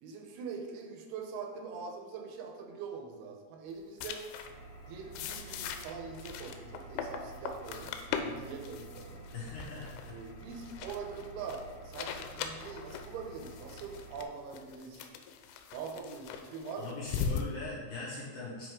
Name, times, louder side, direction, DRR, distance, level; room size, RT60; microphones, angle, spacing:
voice 1, 0.0-4.2 4.9-9.3 10.0-15.1 15.7-16.9, right 5 dB, 80° right, 2 dB, 2.8 m, -43 dB
sound 1, 4.0-4.5 5.1-17.4, left 7 dB, 90° left, 2.7 m, -40 dB
Engine, 4.4-14.3, right 3 dB, 35° left, 1.2 m, -50 dB
voice 2, 9.3-10.2 16.8-18.7, left 3 dB, 70° left, -5 dB, 2.1 m, -41 dB
9.3 x 4.5 x 3.7 m, 1.4 s
omnidirectional pair, 4.6 m